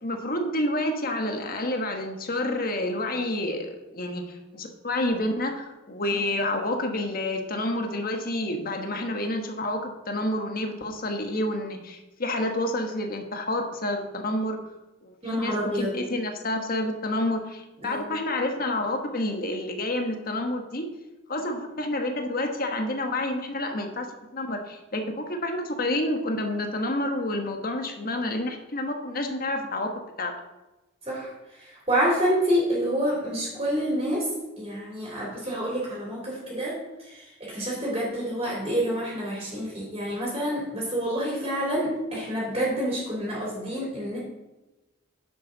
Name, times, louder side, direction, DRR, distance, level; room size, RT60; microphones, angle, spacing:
voice 1, 0.0-14.6 15.0-20.9 21.3-29.9 30.2-30.3, left 1 dB, 50° left, 4 dB, 1.4 m, -29 dB
voice 2, 15.2-15.9 17.8-18.0 31.0-34.3 34.6-44.2, equal, 30° right, -5 dB, 3.5 m, -28 dB
10.5 x 8.0 x 4.0 m, 1.0 s
head